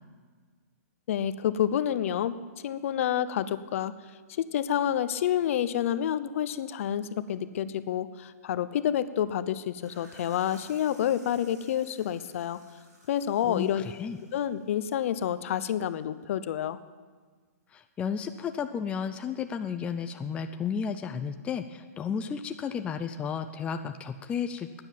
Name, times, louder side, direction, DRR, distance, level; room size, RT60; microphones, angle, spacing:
voice 1, 1.1-2.4 2.6-3.9 4.3-12.6 13.1-13.8 14.3-16.8, left 10 dB, 55° left, 14 dB, 0.8 m, -28 dB
sound 1, 9.7-15.3, right 2 dB, 85° right, 4.7 m, -57 dB
voice 2, 13.4-14.2 17.7-24.8, left 6 dB, 15° left, 7 dB, 0.5 m, -33 dB
12.5 x 9.8 x 9.2 m, 1.5 s
hypercardioid pair, 150°, 9 cm